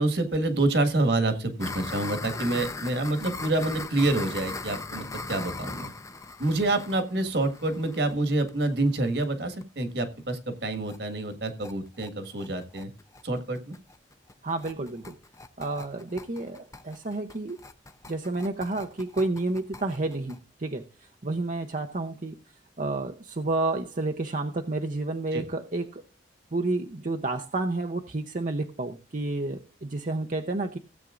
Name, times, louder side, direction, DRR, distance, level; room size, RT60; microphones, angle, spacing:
voice 1, 0.0-5.9 6.4-12.9 13.2-13.7 25.3-25.4, right 2 dB, 65° right, 1.7 m, -27 dB
sound 1, 1.6-9.2 9.6-9.7 10.0-10.1 10.4-10.5 10.7-11.0 11.3-20.4, left 3 dB, 15° left, 0.6 m, -39 dB
voice 2, 14.4-15.2 15.6-17.6 18.1-22.3 22.8-26.0 26.5-30.8, right 2 dB, 45° right, 0.7 m, -30 dB
16.5 x 8.2 x 2.5 m
head